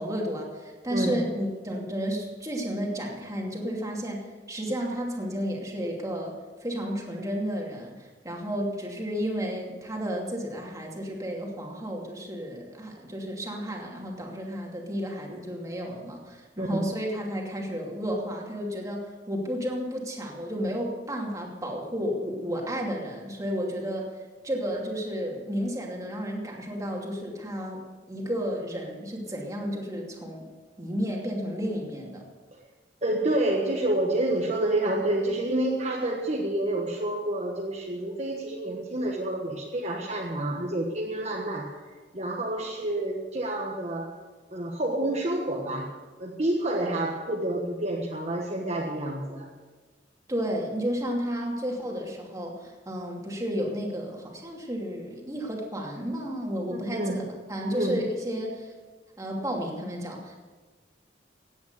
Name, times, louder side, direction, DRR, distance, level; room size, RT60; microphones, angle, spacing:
voice 1, 0.0-4.2 4.5-6.3 6.6-24.1 24.4-30.4 30.8-32.2 50.3-58.7 59.2-60.4, equal, 20° right, -1 dB, 2.6 m, -32 dB
voice 2, 0.9-1.2 16.6-16.8 32.5-32.6 33.0-41.8 42.1-44.2 44.5-45.9 46.2-49.5 56.7-57.2 57.7-58.1, right 1 dB, 35° right, -2 dB, 1.4 m, -28 dB
17.0 x 9.4 x 6.7 m, 1.4 s
head